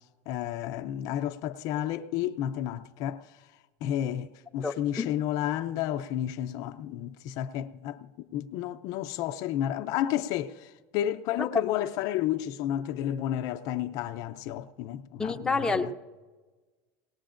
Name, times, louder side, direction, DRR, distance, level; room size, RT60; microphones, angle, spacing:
voice 1, 0.3-3.2 3.8-15.9, left 11 dB, 55° left, 0.5 m, -31 dB
voice 2, 4.6-5.1 15.2-15.9, left 4 dB, 10° left, 0.6 m, -29 dB
20.0 x 18.5 x 2.5 m
supercardioid pair, 130°, 7 cm